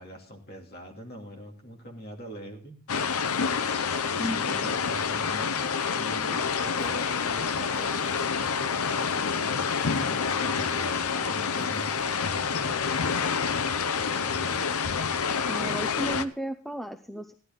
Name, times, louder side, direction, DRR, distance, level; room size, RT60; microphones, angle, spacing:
voice 1, 0.0-2.8 4.1-9.7 10.0-12.9 14.0-14.4, equal, 45° left, 1 dB, 2.6 m, -43 dB
sound 1, 2.9-16.2, left 6 dB, 75° left, 0.7 m, -28 dB
voice 2, 4.2-4.7 15.5-17.3, right 1 dB, ahead, 8 dB, 0.5 m, -34 dB
Walk footsteps, 6.8-7.2 7.7-8.2 8.7-9.2 9.6-10.1 10.6-11.0 11.6-12.0, left 2 dB, 20° left, 1.0 m, -49 dB
15.0 x 11.5 x 3.7 m, 0.42 s
head